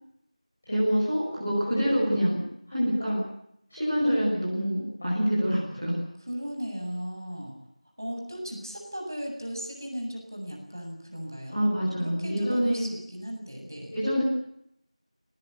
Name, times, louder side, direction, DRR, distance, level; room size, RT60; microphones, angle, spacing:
voice 1, 0.6-2.4 2.7-3.2 3.7-6.0 11.5-12.8 13.9-14.2, equal, 5° left, -12 dB, 7.9 m, -26 dB
voice 2, 6.3-7.6 8.0-11.6 12.0-13.9, equal, 30° right, 1 dB, 7.9 m, -36 dB
30.0 x 20.0 x 8.7 m, 0.74 s
figure-of-eight pair, 180°, 4 cm